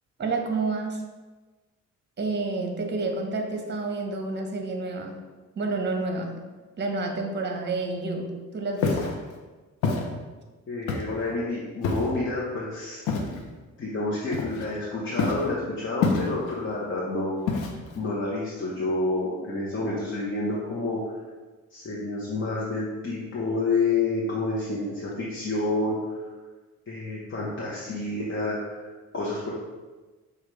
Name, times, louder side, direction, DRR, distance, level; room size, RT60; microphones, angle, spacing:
voice 1, 0.2-1.0 2.2-5.2 5.6-6.4 6.8-9.1, right 3 dB, 35° right, 3 dB, 0.8 m, -29 dB
Walk footsteps, 8.8-9.1 9.8-10.1 10.9-11.2 11.8-12.2 13.1-13.4 14.3-14.8 15.2-15.5 16.0-16.5 17.5-18.0, left 4 dB, 85° left, 0.7 m, -26 dB
voice 2, 10.7-13.4 13.8-17.3 17.9-21.0 21.7-26.0 26.9-28.8 29.1-29.5, left 2 dB, 40° left, -6 dB, 0.9 m, -29 dB
6.3 x 2.4 x 3.2 m, 1.3 s
cardioid pair, 90°, 30 cm